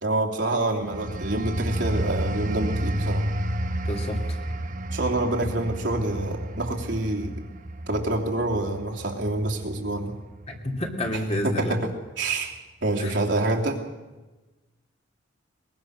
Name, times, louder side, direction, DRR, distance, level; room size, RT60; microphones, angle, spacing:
voice 1, 0.0-3.2 4.9-7.3 7.9-10.2 11.4-11.9 12.2-13.8, right 2 dB, 70° right, -1 dB, 3.0 m, -27 dB
sound 1, 0.8-11.2 11.6-11.9, right 1 dB, 45° right, 1.0 m, -31 dB
voice 2, 3.8-4.2 10.5-11.8 13.0-13.2, left 1 dB, 35° left, 1 dB, 3.0 m, -29 dB
22.0 x 22.0 x 6.4 m, 1.2 s
head